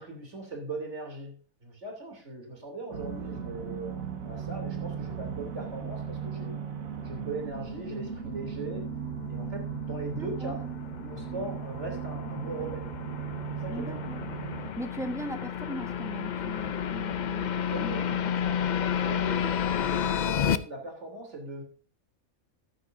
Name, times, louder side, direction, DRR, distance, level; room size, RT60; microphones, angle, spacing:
voice 1, 0.0-6.6 7.0-8.9 9.3-10.7 11.0-12.9 13.6-14.0 17.7-18.1 19.0-21.6, right 2 dB, 55° right, 2 dB, 3.3 m, -39 dB
sound 1, 2.9-14.7, right 7 dB, 75° right, 1.8 m, -37 dB
sound 2, 9.1-20.6, left 8 dB, 75° left, 0.4 m, -31 dB
voice 2, 10.1-10.6 13.7-14.2 14.8-18.6, right 1 dB, ahead, 6 dB, 1.2 m, -39 dB
13.5 x 10.0 x 2.6 m, 0.38 s
omnidirectional pair, 1.5 m